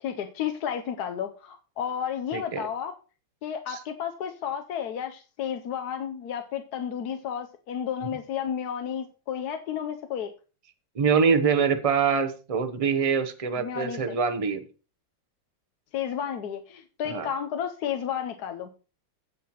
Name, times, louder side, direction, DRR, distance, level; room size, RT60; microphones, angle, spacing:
voice 1, 0.0-3.0 3.4-10.3 13.6-14.2 15.9-18.7, left 8 dB, 65° left, 6 dB, 1.2 m, -32 dB
voice 2, 2.3-2.7 3.7-3.8 10.9-14.6 17.0-17.3, right 6 dB, 30° right, 8 dB, 0.6 m, -24 dB
16.0 x 5.6 x 3.0 m, 0.34 s
omnidirectional pair, 2.0 m